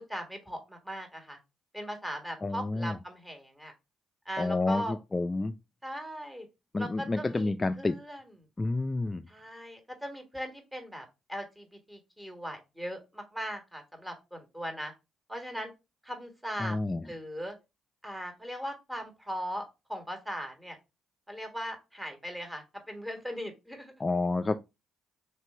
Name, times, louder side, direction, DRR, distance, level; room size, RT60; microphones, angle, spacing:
voice 1, 0.1-1.4 1.7-3.7 4.2-4.9 5.8-6.4 6.8-8.2 9.3-14.9 15.3-15.7 16.0-16.8 17.0-17.5 18.0-20.8 21.3-23.9, equal, 10° right, 1.6 m, -39 dB
voice 2, 2.4-3.0 4.4-5.5 6.7-8.0 8.6-9.3 16.6-17.0 24.0-24.5, left 2 dB, 25° left, 0.3 m, -29 dB
3.3 x 2.9 x 4.3 m
supercardioid pair, 60°, 0 cm